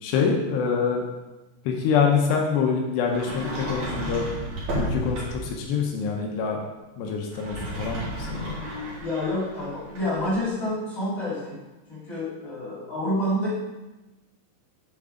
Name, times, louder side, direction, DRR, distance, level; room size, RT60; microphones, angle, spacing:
voice 1, 0.0-1.0 1.7-4.3 4.8-6.6 7.0-8.6, left 6 dB, 80° left, 1 dB, 2.5 m, -25 dB
Sliding door, 3.1-5.6 7.2-10.4, right 1 dB, 50° right, 2.9 m, -33 dB
voice 2, 9.0-11.6 11.9-13.5, left 1 dB, 65° left, -9 dB, 0.8 m, -28 dB
7.8 x 7.8 x 3.8 m, 1.1 s
omnidirectional pair, 6.0 m